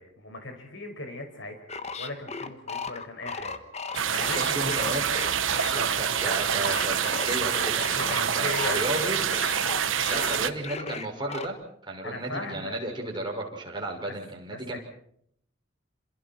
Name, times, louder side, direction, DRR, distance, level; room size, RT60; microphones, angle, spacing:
voice 1, 0.0-1.7 2.0-3.6 3.8-4.7 8.0-9.5 9.9-10.5 12.0-12.8 14.1-14.2 14.5-14.8, left 2 dB, 70° left, 5 dB, 5.7 m, -38 dB
sound 1, 1.7-8.2 8.5-11.5, left 4 dB, 35° left, 1.4 m, -36 dB
sound 2, 3.9-10.5, right 8 dB, 80° right, 1.1 m, -26 dB
voice 2, 4.3-5.0 5.7-9.2 10.1-11.5 11.9-14.8, right 1 dB, 25° right, 0 dB, 6.1 m, -33 dB
28.5 x 27.5 x 4.5 m, 0.68 s
head